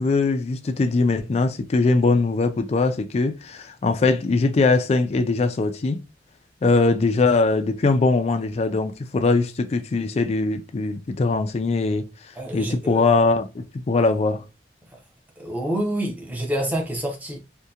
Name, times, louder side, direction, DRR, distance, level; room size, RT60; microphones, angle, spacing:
voice 1, 0.0-6.0 6.6-12.0 12.5-14.4, left 3 dB, 35° left, 0.3 m, -21 dB
voice 2, 12.4-13.1 15.4-17.4, right 1 dB, 10° right, 0.7 m, -27 dB
2.7 x 2.2 x 2.3 m
head